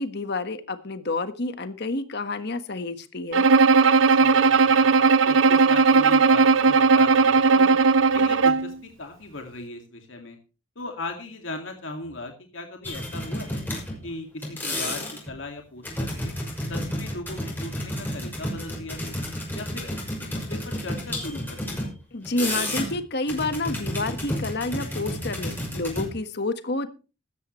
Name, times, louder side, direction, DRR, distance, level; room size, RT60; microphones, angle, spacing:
voice 1, 0.0-3.5 22.1-26.9, left 2 dB, 60° left, 10 dB, 1.5 m, -29 dB
Bowed string instrument, 3.3-8.7, right 4 dB, 85° right, 0.7 m, -17 dB
voice 2, 4.2-7.8 8.1-10.4 10.8-13.6 14.0-16.3 16.7-19.1 19.5-21.9, left 2 dB, 80° left, 3 dB, 2.3 m, -38 dB
sound 1, 12.8-14.1 14.4-15.3 15.8-21.9 22.2-23.0 23.3-26.1, left 1 dB, 10° left, 6.0 m, -31 dB
15.5 x 13.5 x 3.2 m, 0.34 s
head